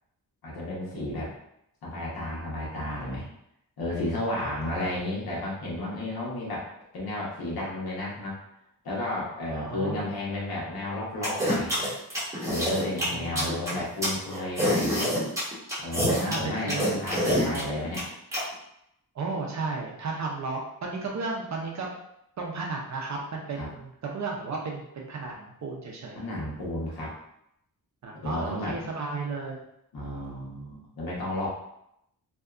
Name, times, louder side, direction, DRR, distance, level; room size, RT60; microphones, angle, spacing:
voice 1, 0.4-1.3 1.8-3.2 3.8-8.4 8.8-11.7 12.4-15.1 15.8-18.0 23.6-23.7 26.1-27.1 28.2-28.8 29.9-31.5, left 1 dB, 80° left, -5 dB, 1.0 m, -32 dB
voice 2, 4.4-5.0 9.5-10.0 13.0-13.8 15.8-17.0 17.3-17.7 19.1-21.9 22.4-26.2 28.0-29.6, right 3 dB, 50° right, -1 dB, 0.4 m, -34 dB
sound 1, 11.2-18.4, equal, 10° right, 1.1 m, -26 dB
2.7 x 2.3 x 2.3 m, 0.78 s
wide cardioid pair, 150°, 37 cm